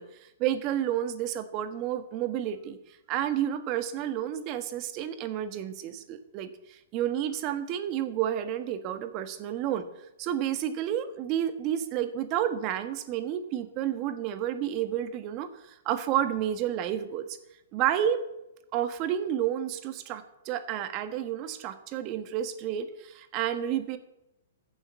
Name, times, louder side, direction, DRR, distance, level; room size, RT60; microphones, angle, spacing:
voice 1, 0.0-2.8 3.1-9.9 10.2-17.4 17.7-18.2 18.7-24.0, right 10 dB, 35° right, 9 dB, 1.4 m, -30 dB
14.5 x 7.3 x 7.1 m, 0.88 s
hypercardioid pair, 125°, 0 cm